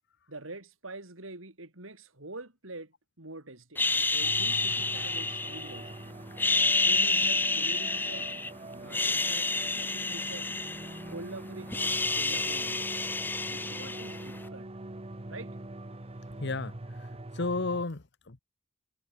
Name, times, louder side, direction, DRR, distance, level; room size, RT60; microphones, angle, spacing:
voice 1, 0.3-6.0 6.8-8.3 8.6-10.5 11.1-13.0 13.4-14.7 15.3-15.6, right 2 dB, 80° right, 4.1 m, -46 dB
sound 1, 3.8-5.9 6.3-8.5 8.8-11.3 11.5-14.4, left 3 dB, 10° left, 0.6 m, -29 dB
sound 2, 4.2-17.8, right 2 dB, 30° right, 1.1 m, -43 dB
voice 2, 16.4-18.4, left 3 dB, 60° left, 1.2 m, -34 dB
head